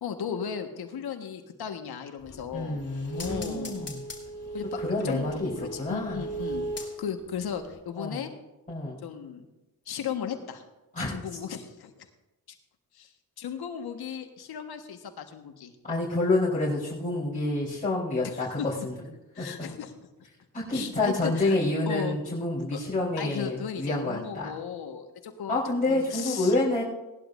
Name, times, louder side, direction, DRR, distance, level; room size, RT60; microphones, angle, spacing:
voice 1, 0.0-2.8 3.1-3.9 4.5-6.7 7.0-8.3 9.0-9.5 9.9-10.6 11.1-12.0 12.9-13.1 13.4-15.7 18.2-18.7 19.3-20.1 20.7-21.6 21.9-22.2 22.7-22.8 23.2-25.6 25.9-26.5, left 8 dB, 75° left, 6 dB, 1.6 m, -36 dB
sound 1, 2.2-7.3 7.7-7.8, right 2 dB, 40° left, 3.1 m, -37 dB
voice 2, 2.5-4.0 4.8-5.5 5.8-6.2 8.0-8.2 8.7-9.0 10.9-11.2 15.8-18.9 19.4-19.5 20.5-24.5 25.5-26.8, left 2 dB, 20° left, -8 dB, 4.1 m, -28 dB
18.5 x 11.5 x 2.6 m, 1.0 s
supercardioid pair, 60°, 39 cm